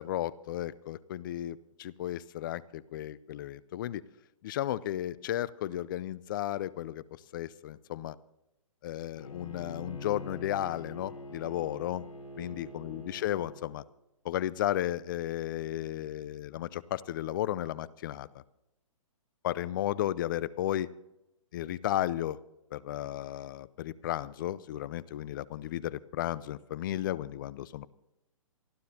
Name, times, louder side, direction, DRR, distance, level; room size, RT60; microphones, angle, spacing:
voice 1, 0.0-4.0 4.4-7.0 7.3-8.2 8.8-12.0 12.4-13.8 14.2-18.4 19.4-20.9 21.5-22.4 22.7-27.9, left 13 dB, 35° left, 19 dB, 0.5 m, -34 dB
Bowed string instrument, 9.2-13.7, left 2 dB, 80° left, 4.4 m, -45 dB
28.0 x 11.5 x 2.8 m, 0.89 s
hypercardioid pair, 145°, 18 cm